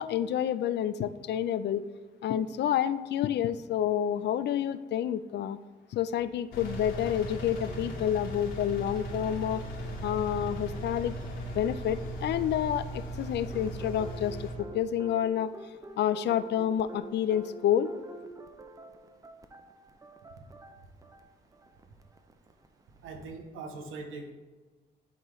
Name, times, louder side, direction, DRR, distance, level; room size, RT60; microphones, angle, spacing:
voice 1, 0.0-1.9 2.2-5.6 5.9-9.6 10.0-11.1 11.5-15.5 16.0-17.9, left 10 dB, 60° left, 13 dB, 0.4 m, -29 dB
Engine, 6.5-14.5, right 1 dB, 85° left, 1.9 m, -38 dB
sound 1, 13.5-23.3, right 3 dB, 15° right, 0.5 m, -49 dB
voice 2, 23.0-24.3, right 3 dB, 85° right, 4 dB, 0.9 m, -41 dB
11.0 x 3.9 x 3.1 m, 1.3 s
cardioid pair, 90°, 20 cm